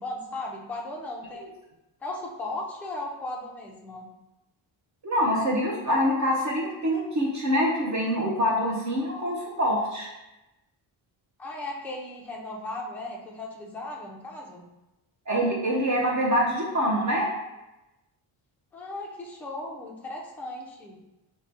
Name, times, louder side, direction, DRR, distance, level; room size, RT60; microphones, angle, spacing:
voice 1, 0.0-1.5 2.0-4.1 11.4-14.7 18.7-21.0, left 2 dB, 5° left, -2 dB, 0.3 m, -36 dB
voice 2, 5.0-10.1 15.3-17.3, equal, 40° right, -2 dB, 0.6 m, -25 dB
4.7 x 2.2 x 4.0 m, 0.97 s
wide cardioid pair, 175°, 47 cm